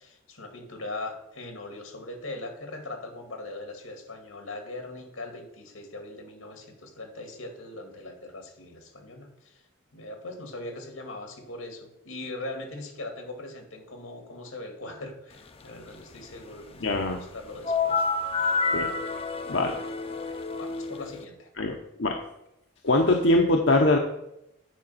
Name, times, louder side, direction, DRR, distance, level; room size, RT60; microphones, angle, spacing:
voice 1, 0.0-9.6 9.9-18.1 19.5-19.9 20.1-21.5, left 2 dB, 85° left, 4 dB, 2.2 m, -40 dB
voice 2, 16.8-17.2 18.7-18.9 19.5-19.9 21.6-22.2 22.8-24.0, left 2 dB, 65° left, 2 dB, 0.8 m, -23 dB
sound 1, 17.6-21.2, left 4 dB, 25° left, 0.5 m, -28 dB
9.3 x 5.2 x 5.6 m, 0.84 s
head